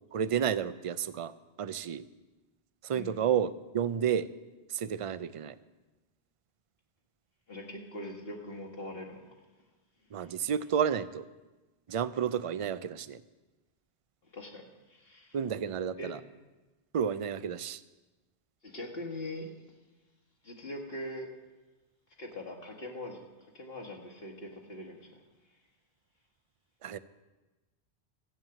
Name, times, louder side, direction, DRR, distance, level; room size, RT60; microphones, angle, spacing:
voice 1, 0.1-1.3 1.6-2.0 2.8-4.3 4.7-5.6 10.1-11.2 11.9-13.2 15.3-16.2 16.9-17.8 26.8-27.0, right 8 dB, 60° right, 14 dB, 0.3 m, -31 dB
voice 2, 7.5-9.4 10.2-10.3 14.3-15.4 16.0-16.2 18.6-19.5 20.4-21.3 22.2-25.2, left 1 dB, 60° left, 1 dB, 2.0 m, -42 dB
14.0 x 7.4 x 9.0 m, 1.2 s
omnidirectional pair, 1.1 m